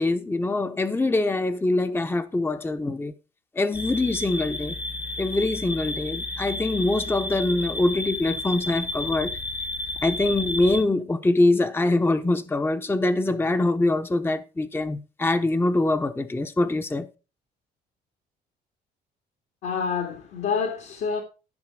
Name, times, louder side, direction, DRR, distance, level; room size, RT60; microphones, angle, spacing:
voice 1, 0.0-3.1 3.5-4.8 5.2-9.4 10.0-17.1, left 2 dB, 10° left, 0.8 m, -24 dB
sound 1, 3.7-10.8, left 2 dB, 55° left, 1.8 m, -32 dB
voice 2, 19.6-21.2, left 6 dB, 75° left, 2.4 m, -27 dB
13.0 x 5.8 x 4.8 m
cardioid pair, 80°, 19 cm